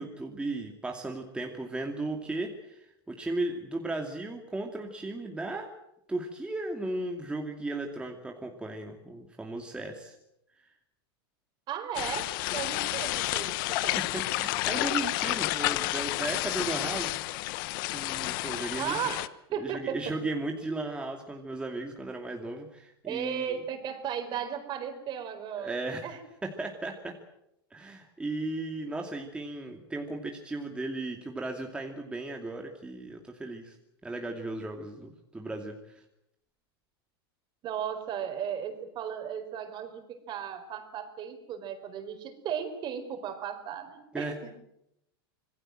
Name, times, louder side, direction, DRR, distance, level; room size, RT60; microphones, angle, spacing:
voice 1, 0.0-5.7 6.1-10.2 10.6-10.7 14.0-17.2 17.9-19.1 19.5-23.6 25.5-26.1 26.4-27.1 27.7-33.8 34.0-36.0 44.1-44.3, right 2 dB, 10° right, 2 dB, 2.6 m, -36 dB
voice 2, 11.7-14.0 18.8-20.1 23.0-25.7 26.0-26.2 37.6-44.3, right 8 dB, 35° right, 9 dB, 4.6 m, -35 dB
sound 1, 11.9-19.3, left 19 dB, 60° left, 1.0 m, -30 dB
26.5 x 20.5 x 7.8 m, 0.82 s
supercardioid pair, 130°, 13 cm